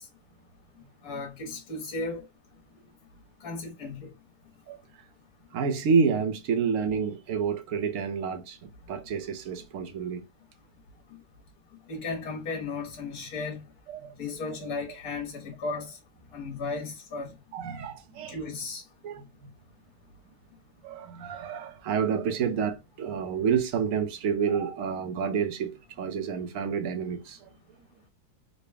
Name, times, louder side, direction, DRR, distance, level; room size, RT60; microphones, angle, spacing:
voice 1, 1.0-2.2 3.4-4.1 11.9-13.6 14.2-16.0 16.3-17.3 18.3-18.8, left 3 dB, 70° left, 1.6 m, -35 dB
voice 2, 5.5-10.2 13.9-14.1 17.5-18.4 19.0-19.5 20.8-27.5, right 6 dB, 60° right, 1.0 m, -29 dB
3.9 x 2.2 x 3.3 m
omnidirectional pair, 1.7 m